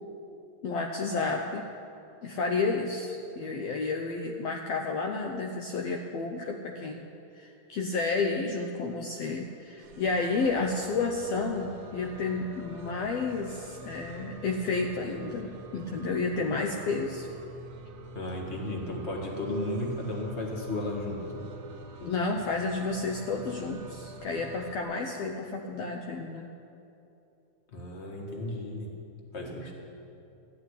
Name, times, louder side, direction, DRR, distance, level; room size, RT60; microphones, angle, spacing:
voice 1, 0.6-1.6 2.2-7.1 7.4-17.3 22.0-26.5, left 3 dB, 70° left, 2 dB, 1.7 m, -31 dB
sound 1, 8.9-24.8, right 2 dB, 65° right, 2.2 m, -47 dB
voice 2, 18.1-21.4 27.7-28.9 29.3-29.7, left 1 dB, 25° left, 0 dB, 1.6 m, -34 dB
14.0 x 8.2 x 9.8 m, 2.8 s
omnidirectional pair, 3.4 m